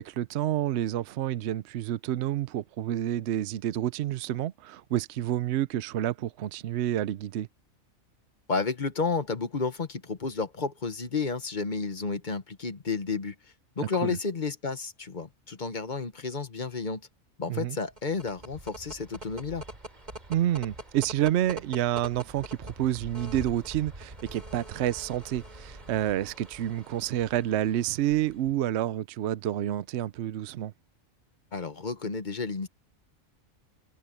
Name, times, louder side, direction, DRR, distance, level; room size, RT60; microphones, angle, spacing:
voice 1, 0.0-7.5 14.0-14.2 17.5-17.8 20.3-30.7, right 12 dB, 65° right, 0.8 m, -29 dB
voice 2, 8.5-13.3 13.8-17.0 17.4-19.6 31.5-32.7, left 4 dB, 35° left, 1.2 m, -31 dB
sound 1, 17.9-28.6, right 1 dB, 30° right, 3.4 m, -44 dB
omnidirectional pair, 1.4 m